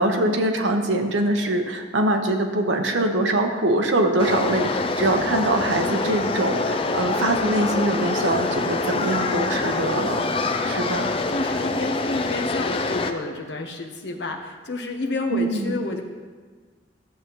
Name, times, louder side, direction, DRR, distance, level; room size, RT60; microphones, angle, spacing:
voice 1, 0.0-10.2 10.6-11.1 15.3-15.8, right 1 dB, 85° right, 4 dB, 0.9 m, -23 dB
sound 1, 4.2-13.1, left 3 dB, 30° left, 0.4 m, -25 dB
voice 2, 10.5-16.0, left 2 dB, 65° left, 2 dB, 0.9 m, -30 dB
13.0 x 6.8 x 3.0 m, 1.5 s
head